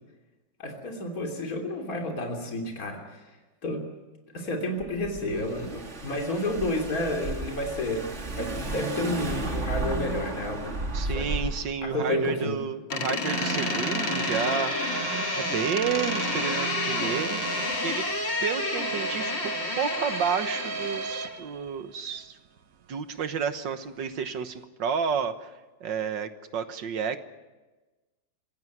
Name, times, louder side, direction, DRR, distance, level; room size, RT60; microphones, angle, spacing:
voice 1, 0.6-3.2 3.6-3.8 4.3-10.8 11.1-11.3 11.8-12.6, left 1 dB, 45° left, 2 dB, 3.6 m, -31 dB
Car / Engine, 4.8-11.7, right 2 dB, 35° right, 2.7 m, -33 dB
voice 2, 10.9-14.7 15.3-18.1 18.4-22.4 22.9-25.5 25.8-27.2, right 7 dB, 70° right, 10 dB, 1.9 m, -31 dB
Door, 12.9-21.4, left 4 dB, 75° left, 2.6 m, -31 dB
sound 1, 13.2-22.2 22.6-22.7 23.2-23.3, right 6 dB, 55° right, 1.1 m, -34 dB
25.5 x 16.0 x 9.3 m, 1.2 s
omnidirectional pair, 2.1 m